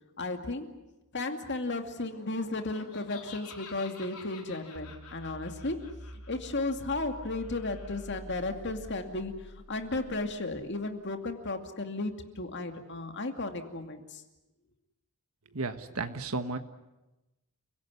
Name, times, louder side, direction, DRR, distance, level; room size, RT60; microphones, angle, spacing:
voice 1, 0.2-0.7 1.1-5.8 6.3-9.3 9.7-14.2, left 2 dB, 50° left, 6 dB, 2.4 m, -34 dB
Laughter, 2.6-8.2, left 5 dB, 80° left, 4.2 m, -50 dB
sound 1, 4.7-11.0, equal, 30° right, 1.6 m, -48 dB
voice 2, 15.5-16.6, right 3 dB, 75° right, 8 dB, 1.5 m, -33 dB
30.0 x 17.0 x 9.6 m, 1.0 s
head